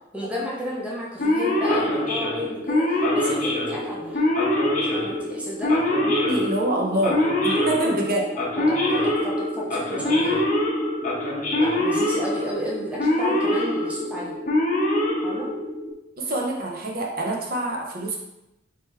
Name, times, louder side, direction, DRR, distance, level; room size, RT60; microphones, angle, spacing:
voice 1, 0.1-4.2 4.9-5.7 8.1-8.2 8.6-10.4 11.6-14.3 15.2-15.5, equal, 5° right, -6 dB, 0.7 m, -32 dB
Male speech man speaking / Siren, 1.2-15.9, left 1 dB, 45° left, 0.7 m, -24 dB
voice 2, 6.2-7.2 7.4-8.2 16.2-18.2, right 1 dB, 55° right, -1 dB, 0.7 m, -25 dB
3.1 x 2.9 x 3.4 m, 0.94 s
head